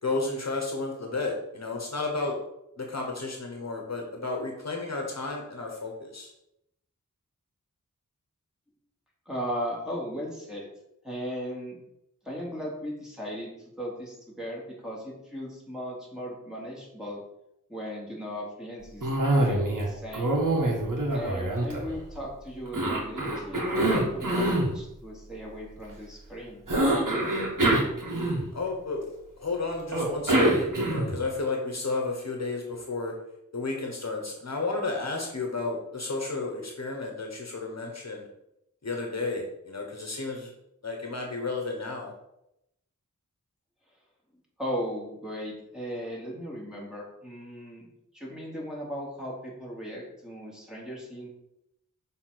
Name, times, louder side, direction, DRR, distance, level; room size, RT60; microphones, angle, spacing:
voice 1, 0.0-2.3 2.8-6.3 28.5-29.1 29.4-33.1 33.5-38.3 38.8-40.5 40.8-42.1, left 3 dB, 55° left, 1 dB, 1.3 m, -32 dB
voice 2, 9.3-10.7 11.0-11.8 12.2-17.2 17.7-19.1 19.3-20.3 21.1-26.6 44.6-47.8 48.1-51.3, equal, ahead, -4 dB, 2.8 m, -37 dB
Cough, 19.0-19.9 20.1-22.2 22.7-24.7 26.7-28.7 29.9-31.2, right 1 dB, 75° right, 1.8 m, -25 dB
6.6 x 3.7 x 6.0 m, 0.83 s
wide cardioid pair, 60°, 32 cm